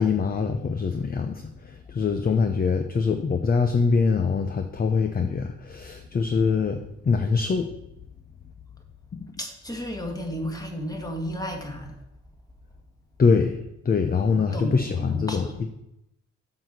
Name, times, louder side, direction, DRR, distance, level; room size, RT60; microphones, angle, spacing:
voice 1, 0.0-1.4 1.9-7.7 13.2-13.6 13.8-15.7, left 5 dB, 30° left, 7 dB, 0.8 m, -23 dB
voice 2, 9.4-12.0 14.2-15.5, equal, 10° left, 3 dB, 1.9 m, -33 dB
7.0 x 6.0 x 6.6 m, 0.83 s
cardioid pair, 90°, 30 cm